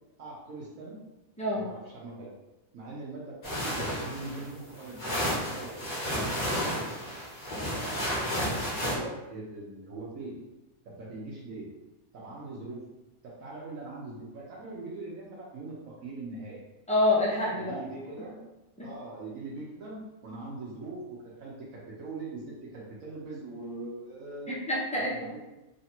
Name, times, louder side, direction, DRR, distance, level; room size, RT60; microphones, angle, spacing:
voice 1, 0.2-1.0 1.5-2.3 2.7-6.8 7.6-8.2 8.6-10.4 10.8-11.7 12.1-12.8 13.2-16.6 17.6-18.4 18.8-24.6 25.0-25.4, right 2 dB, 70° right, -5 dB, 1.2 m, -42 dB
voice 2, 1.4-1.7 16.9-17.8 18.8-18.9 24.5-25.3, left 1 dB, 5° left, -6 dB, 0.7 m, -27 dB
sound 1, 3.4-8.9, equal, 30° left, 1.4 m, -32 dB
3.3 x 2.7 x 4.2 m, 1.0 s
omnidirectional pair, 1.5 m